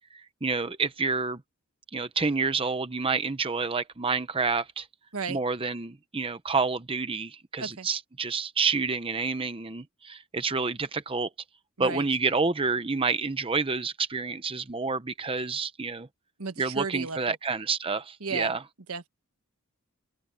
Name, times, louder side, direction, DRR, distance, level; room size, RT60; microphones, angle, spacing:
voice 1, 0.1-1.4 1.9-4.9 5.3-11.3 11.8-16.1 16.6-18.6, right 4 dB, 25° right, 0.8 m, -29 dB
voice 2, 16.4-17.4 18.2-18.6 18.9-19.1, right 5 dB, 80° right, 1.5 m, -34 dB
open air
head